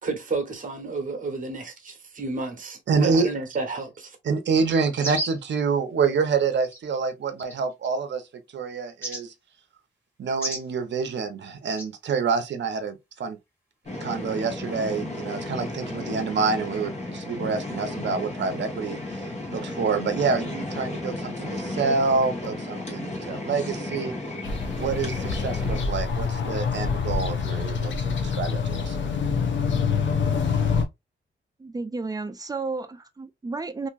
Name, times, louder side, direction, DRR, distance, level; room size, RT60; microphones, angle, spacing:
voice 1, 0.0-4.2, right 3 dB, 40° right, 1.0 m, -31 dB
voice 2, 2.9-3.3 4.2-9.3 10.2-13.4 13.9-24.1 24.8-29.0, right 5 dB, 60° right, 0.6 m, -27 dB
sound 1, 5.0-5.5 6.6-6.8 7.4-7.9 9.0-9.2 10.4-10.7 11.7-11.9, right 1 dB, 10° left, 1.4 m, -32 dB
sound 2, 13.8-25.8, left 2 dB, 35° left, 1.1 m, -34 dB
sound 3, 24.4-30.9, left 5 dB, 65° left, 0.6 m, -26 dB
voice 3, 31.6-33.9, right 3 dB, 20° right, 0.4 m, -32 dB
2.9 x 2.6 x 2.3 m
wide cardioid pair, 130°, 20 cm